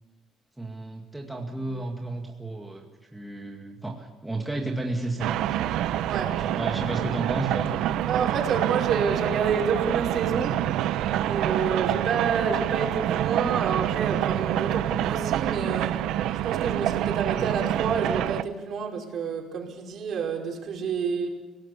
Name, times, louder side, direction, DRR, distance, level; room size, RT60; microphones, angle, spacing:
voice 1, 0.6-2.9 3.1-5.7 6.4-7.7, right 2 dB, 5° right, 0 dB, 2.1 m, -32 dB
sound 1, 5.2-18.4, right 12 dB, 85° right, 0.9 m, -27 dB
voice 2, 6.0-6.4 8.1-10.6 11.2-16.0 16.3-21.3, right 6 dB, 50° right, 1 dB, 5.1 m, -28 dB
30.0 x 18.5 x 7.0 m, 1.1 s
cardioid pair, 150°, 0 cm